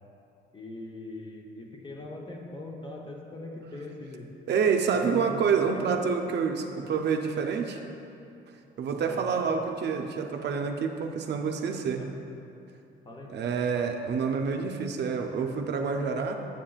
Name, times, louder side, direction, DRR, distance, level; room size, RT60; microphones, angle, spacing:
voice 1, 0.5-4.3 4.9-6.0 6.6-6.9 9.0-9.3 12.0-12.1 13.1-13.3, left 2 dB, 25° left, 0 dB, 0.9 m, -41 dB
voice 2, 4.5-7.8 8.8-12.1 13.3-16.3, right 6 dB, 60° right, 4 dB, 0.5 m, -28 dB
7.4 x 7.3 x 2.4 m, 2.7 s
cardioid pair, 90°, 20 cm